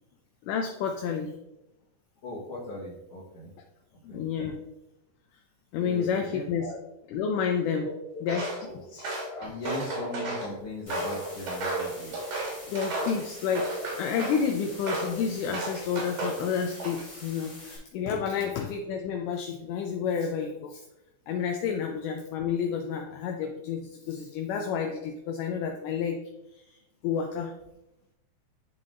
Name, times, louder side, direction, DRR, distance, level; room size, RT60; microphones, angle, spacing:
voice 1, 0.4-1.3 4.0-4.6 5.7-6.7 7.1-7.9 8.2-8.5 8.9-9.1 12.7-13.7 14.0-20.8 21.3-26.2 27.0-27.5, left 7 dB, 80° left, 4 dB, 1.9 m, -30 dB
voice 2, 2.2-3.5 4.1-4.2 5.8-6.8 7.8-8.9 9.1-12.2 18.3-18.5, left 1 dB, 55° left, -8 dB, 1.8 m, -39 dB
Walk footsteps, 8.3-8.6 9.0-10.5 10.9-13.2 13.6-14.4 14.8-15.2 15.5-16.4 16.8-17.2, right 2 dB, 75° right, 3.1 m, -33 dB
sound 1, 10.9-17.8, left 1 dB, 15° left, 1.0 m, -46 dB
11.0 x 3.7 x 2.5 m, 0.87 s
omnidirectional pair, 4.0 m